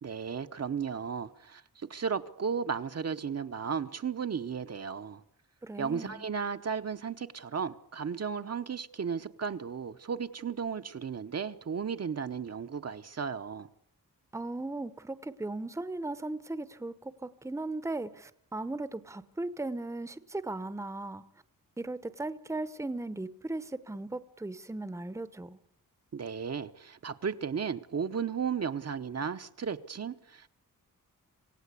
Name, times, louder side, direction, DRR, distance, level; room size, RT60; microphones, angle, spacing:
voice 1, 0.0-5.2 5.8-13.7 26.1-30.5, right 6 dB, 45° right, 0.9 m, -34 dB
voice 2, 5.6-6.3 14.3-21.2 21.8-25.6, right 2 dB, 10° right, 0.9 m, -37 dB
27.0 x 17.0 x 8.3 m
wide cardioid pair, 170°, 34 cm